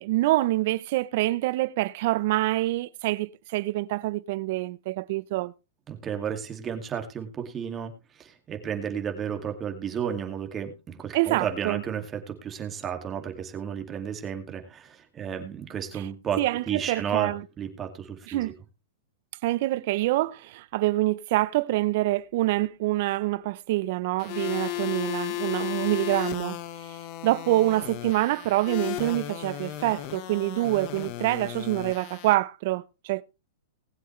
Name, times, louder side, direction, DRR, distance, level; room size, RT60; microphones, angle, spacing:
voice 1, 0.0-5.5 11.1-11.8 16.4-17.4 18.3-18.5 19.4-26.6 27.2-33.2, right 17 dB, 55° right, 0.6 m, -26 dB
voice 2, 5.9-16.4 16.7-17.3 17.6-18.5, right 8 dB, 20° right, 2.2 m, -33 dB
sound 1, 24.2-32.3, left 16 dB, 45° left, 1.2 m, -35 dB
19.5 x 7.8 x 3.2 m
hypercardioid pair, 140°, 0 cm